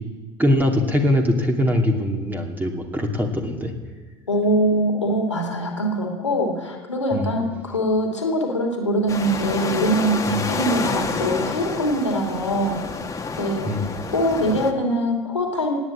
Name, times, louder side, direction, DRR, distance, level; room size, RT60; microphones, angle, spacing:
voice 1, 0.4-3.7 7.1-7.4 13.6-13.9, left 1 dB, 10° right, 2 dB, 2.6 m, -22 dB
voice 2, 4.3-12.8 13.4-13.7 14.1-15.7, equal, 90° left, 2 dB, 2.6 m, -23 dB
sound 1, 9.1-14.7, left 4 dB, 20° left, 1.8 m, -28 dB
17.5 x 9.7 x 8.5 m, 1.3 s
figure-of-eight pair, 65°, 15 cm